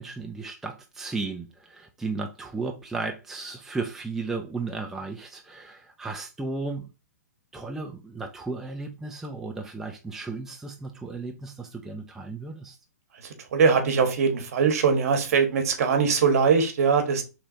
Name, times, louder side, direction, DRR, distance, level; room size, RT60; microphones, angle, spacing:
voice 1, 0.0-6.9 7.5-12.8, right 3 dB, 5° right, 0.4 m, -34 dB
voice 2, 13.5-17.2, right 5 dB, 60° right, 1.1 m, -21 dB
4.4 x 3.2 x 2.6 m
hypercardioid pair, 135°, 9 cm